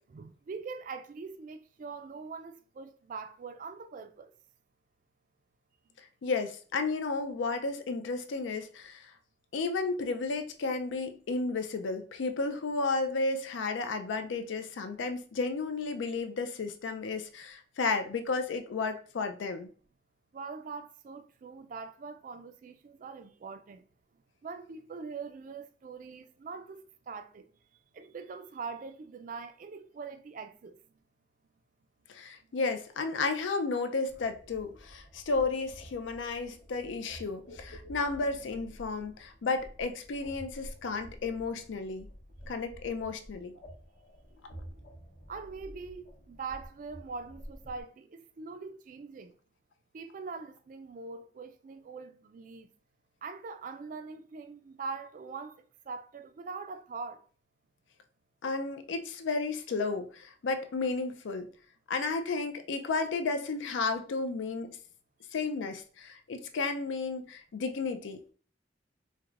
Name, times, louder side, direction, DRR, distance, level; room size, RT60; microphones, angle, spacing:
voice 1, 0.0-4.3 20.3-23.8 24.4-27.5 27.9-30.8 45.3-49.3 49.9-52.7 53.2-57.2, right 4 dB, 45° right, 0.3 m, -43 dB
voice 2, 6.2-9.1 9.5-19.7 32.1-42.1 42.5-43.6 58.4-61.5 61.9-64.8 65.3-68.3, left 3 dB, 85° left, 0.4 m, -33 dB
sound 1, 34.1-47.8, equal, 65° left, 1.0 m, -50 dB
4.6 x 2.1 x 2.4 m
head